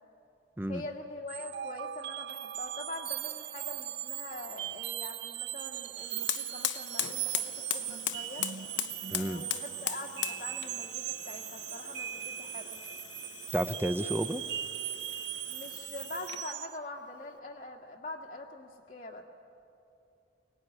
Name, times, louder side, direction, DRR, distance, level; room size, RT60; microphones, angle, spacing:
voice 1, 0.7-8.5 9.1-12.8 15.5-19.2, left 2 dB, 45° left, 0 dB, 1.7 m, -44 dB
sound 1, 1.3-16.8, right 13 dB, 70° right, 0.5 m, -39 dB
Fire, 5.9-16.5, left 12 dB, 80° left, 0.8 m, -39 dB
voice 2, 9.1-9.4 13.5-14.4, right 1 dB, 10° right, 11 dB, 0.6 m, -31 dB
23.0 x 19.5 x 9.8 m, 2.7 s
head